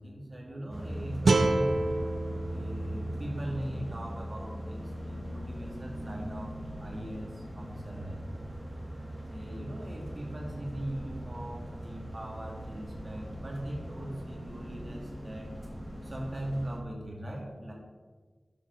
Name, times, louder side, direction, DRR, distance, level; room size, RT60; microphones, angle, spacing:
voice 1, 0.0-1.7 2.5-8.3 9.3-15.5 16.0-17.7, right 1 dB, 40° right, -2 dB, 2.7 m, -40 dB
sound 1, 0.7-16.8, equal, 10° right, 1.9 m, -40 dB
sound 2, 1.3-4.4, right 2 dB, 75° right, 0.6 m, -29 dB
11.0 x 7.4 x 4.1 m, 1.4 s
wide cardioid pair, 70°, 0 cm